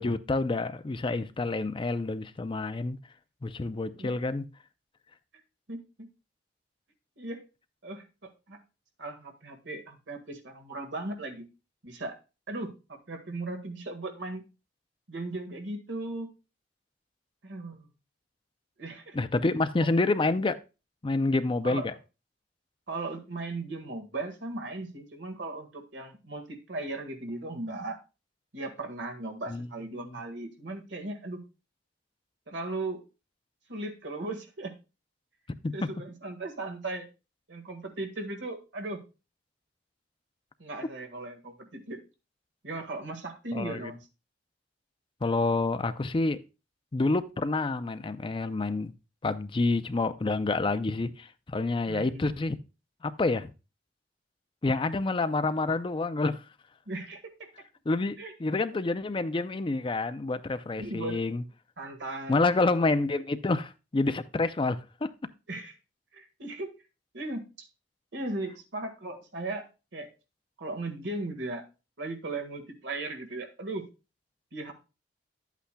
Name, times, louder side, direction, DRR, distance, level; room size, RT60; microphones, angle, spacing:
voice 1, 0.0-3.0 3.4-4.4 19.1-20.6 21.0-21.9 29.5-29.7 29.9-30.2 35.6-35.7 43.5-43.9 45.2-46.4 46.9-48.9 49.2-52.6 53.0-53.5 54.6-56.4 57.9-61.4 62.3-65.1, left 3 dB, 30° left, 0.5 m, -28 dB
voice 2, 5.7-6.1 7.2-7.4 7.8-8.6 9.0-11.5 11.8-12.2 12.5-14.4 15.1-16.3 17.4-17.9 18.8-19.2 19.8-19.9 21.6-21.9 22.9-28.0 28.5-31.4 32.5-33.0 33.7-34.7 35.7-37.1 37.5-39.0 40.6-42.0 42.6-44.0 51.9-52.3 56.9-57.5 58.2-58.3 60.8-61.3 61.8-62.7 65.5-65.7 66.1-66.7 67.1-67.7 68.1-69.7 69.9-70.1 70.6-71.6 72.0-73.9 74.5-74.7, right 2 dB, 80° right, 1.7 m, -37 dB
11.5 x 8.2 x 2.3 m
head